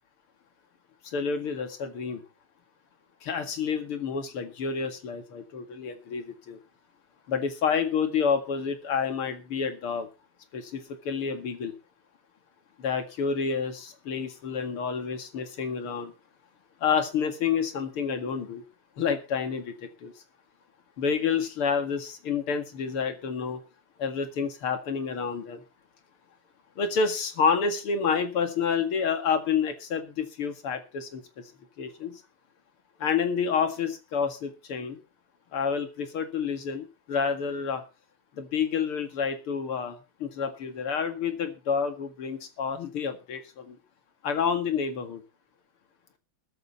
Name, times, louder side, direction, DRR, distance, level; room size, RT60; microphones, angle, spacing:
voice 1, 1.0-2.2 3.2-6.6 7.3-10.1 10.5-11.7 12.8-16.1 16.8-18.6 19.0-20.1 21.0-23.6 24.0-25.6 26.8-31.2 31.8-32.2 33.0-35.0 35.5-37.8 38.4-43.8 44.2-45.2, left 6 dB, 85° left, 8 dB, 2.9 m, -29 dB
21.0 x 7.9 x 4.2 m, 0.31 s
omnidirectional pair, 2.3 m